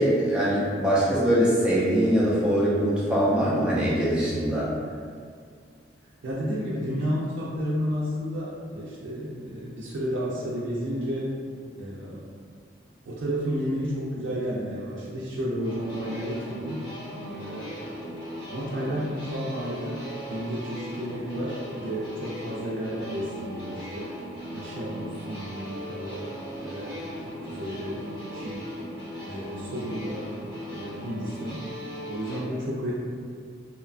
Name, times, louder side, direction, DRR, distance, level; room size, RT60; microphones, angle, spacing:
voice 1, 0.0-4.7, equal, 5° right, -9 dB, 0.5 m, -22 dB
voice 2, 6.2-11.3 11.8-12.2 13.1-16.9 17.3-17.9 18.5-20.0 20.3-24.1 24.5-28.0 28.3-28.7 29.2-30.3 30.7-31.6 32.1-32.9, equal, 80° right, -6 dB, 0.4 m, -32 dB
sound 1, 15.6-32.4, equal, 25° left, 0.8 m, -38 dB
2.8 x 2.1 x 2.4 m, 2.1 s
head